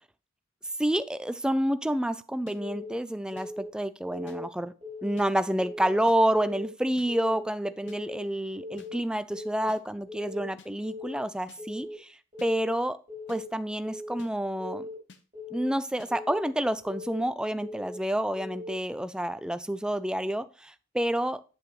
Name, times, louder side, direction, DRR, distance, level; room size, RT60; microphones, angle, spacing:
voice 1, 0.8-4.7 5.0-13.0 13.3-14.9 15.5-21.4, right 1 dB, 5° right, 12 dB, 0.4 m, -29 dB
sound 1, 2.5-2.6 3.4-3.5 4.3-4.4 5.2-5.3 6.1-6.2 7.0-7.1 7.9-8.0 8.8-8.9 9.7-9.8 10.6-10.7 11.5-11.6 12.4-12.5 13.3-13.4 14.2-14.3 15.1-15.2 16.0-16.1, left 3 dB, 60° left, 1.0 m, -52 dB
Keyboard (musical) / Alarm, 2.6-2.9 3.3-3.7 4.1-4.4 4.8-5.2 5.6-5.9 6.3-6.7 7.1-7.4 7.8-8.2 8.6-8.9 9.3-9.7 10.1-10.5 10.8-11.2 11.6-12.0 12.3-12.7 13.1-13.5 13.8-14.2 14.6-15.0 15.3-15.7 16.1-16.5 16.8-17.2 17.6-18.0 18.3-18.7, left 2 dB, 30° right, 2.9 m, -40 dB
8.9 x 7.7 x 3.1 m, 0.34 s
head